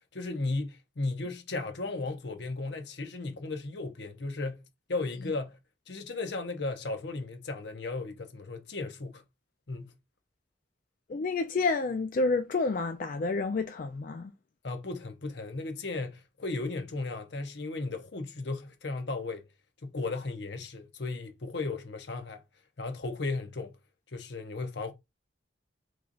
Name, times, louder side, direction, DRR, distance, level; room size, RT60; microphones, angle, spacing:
voice 1, 0.1-5.6 5.9-9.2 9.7-10.0 14.6-19.4 19.8-22.4 22.8-23.8 24.1-24.9, left 3 dB, 60° left, 0.7 m, -35 dB
voice 2, 11.1-14.3, left 3 dB, 45° left, 0.3 m, -29 dB
3.1 x 2.4 x 3.8 m
head